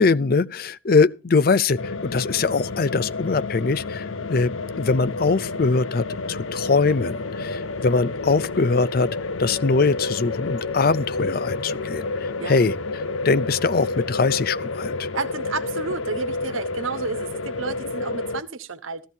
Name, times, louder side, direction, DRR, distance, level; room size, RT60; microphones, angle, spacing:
voice 1, 0.0-4.5 4.8-9.1 9.4-12.1 12.5-12.7 13.2-14.9, left 4 dB, 45° left, 0.5 m, -22 dB
sound 1, 1.8-18.4, left 3 dB, 80° left, 0.8 m, -30 dB
voice 2, 15.1-19.1, right 4 dB, 80° right, 1.2 m, -31 dB
15.0 x 13.5 x 2.7 m
head